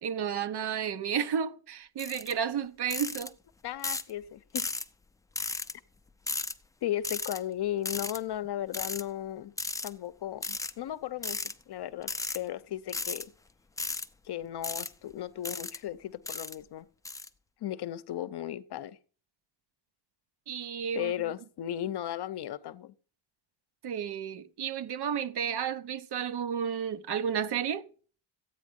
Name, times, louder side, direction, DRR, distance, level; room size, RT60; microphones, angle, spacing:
voice 1, 0.0-3.3 20.5-21.1 23.8-27.9, right 8 dB, 55° right, 0.9 m, -32 dB
sound 1, 2.0-2.3 2.9-3.3 3.8-4.1 4.6-4.9 5.4-5.7 6.3-6.5 7.0-7.4 7.9-8.2 8.7-9.0 9.6-9.9 10.4-10.7 11.2-11.5 12.0-12.4 12.9-13.2 13.8-14.1 14.6-14.9 15.4-15.8 16.3-16.6 17.1-17.3, left 3 dB, 5° left, 0.5 m, -34 dB
voice 2, 3.6-4.7 6.8-9.5 9.8-13.3 14.3-16.9 17.6-19.0 20.9-22.9, left 12 dB, 55° left, 0.8 m, -36 dB
14.0 x 9.2 x 5.2 m
cardioid pair, 145°, 48 cm